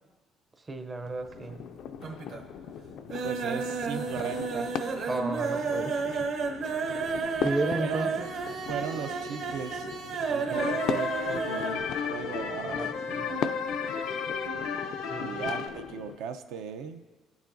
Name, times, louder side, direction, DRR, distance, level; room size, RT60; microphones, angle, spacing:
voice 1, 0.6-1.6 5.1-6.3 7.4-8.3 10.5-10.8 12.6-13.3 15.1-15.4, right 2 dB, 20° right, 7 dB, 0.5 m, -34 dB
sound 1, 1.1-1.7 2.0-2.5 2.8-11.8 12.1-12.2 12.5-12.6, right 5 dB, 60° right, 1.0 m, -32 dB
sound 2, 1.3-16.2, left 8 dB, 65° left, 0.3 m, -39 dB
voice 2, 3.2-4.7 7.2-7.4 7.8-8.2 8.7-9.9 10.3-11.8 12.1-12.8 15.2-17.0, right 7 dB, 85° right, 7 dB, 0.5 m, -37 dB
sound 3, 10.5-15.7, left 5 dB, 85° left, 0.7 m, -33 dB
20.0 x 7.1 x 2.6 m, 1.5 s
cardioid pair, 140°, 0 cm